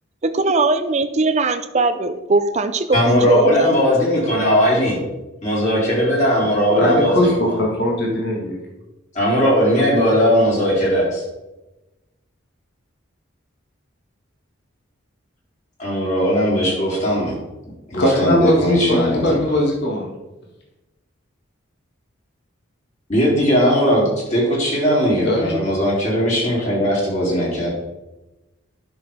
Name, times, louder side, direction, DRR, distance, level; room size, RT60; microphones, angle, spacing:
voice 1, 0.2-3.8, right 3 dB, 35° right, 9 dB, 0.5 m, -20 dB
voice 2, 2.9-5.0 5.4-7.4 9.1-11.2 15.8-17.3 17.9-19.4 23.1-27.7, equal, 35° left, -5 dB, 3.3 m, -18 dB
voice 3, 6.8-8.6 17.9-20.1 25.2-25.5, left 1 dB, 55° left, -2 dB, 1.8 m, -19 dB
11.0 x 6.3 x 3.6 m, 1.0 s
head